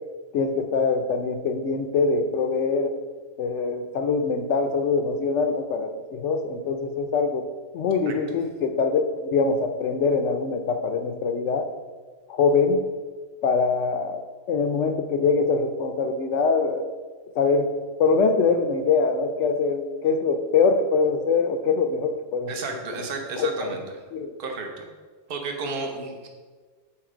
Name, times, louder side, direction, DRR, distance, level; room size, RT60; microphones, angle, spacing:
voice 1, 0.3-2.9 3.4-7.5 7.7-11.7 12.3-12.9 13.4-14.2 14.5-16.9 17.4-17.7 18.0-22.5 23.4-23.5 24.1-24.3, left 4 dB, 80° left, 7 dB, 1.0 m, -23 dB
voice 2, 22.5-23.8 24.4-24.9 25.3-26.3, right 3 dB, 55° right, 3 dB, 1.0 m, -32 dB
7.7 x 4.1 x 5.0 m, 1.5 s
omnidirectional pair, 1.2 m